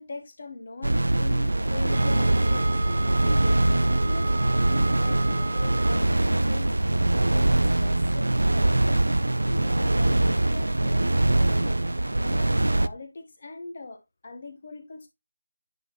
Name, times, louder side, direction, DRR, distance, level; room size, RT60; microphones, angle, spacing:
voice 1, 0.0-2.8 3.2-11.8 12.2-15.1, left 3 dB, 45° left, 1.6 m, -41 dB
sound 1, 0.8-12.9, right 1 dB, 75° right, 0.6 m, -23 dB
sound 2, 1.9-6.1, right 3 dB, 40° right, 0.9 m, -35 dB
10.5 x 4.2 x 3.2 m
figure-of-eight pair, 160°, 0 cm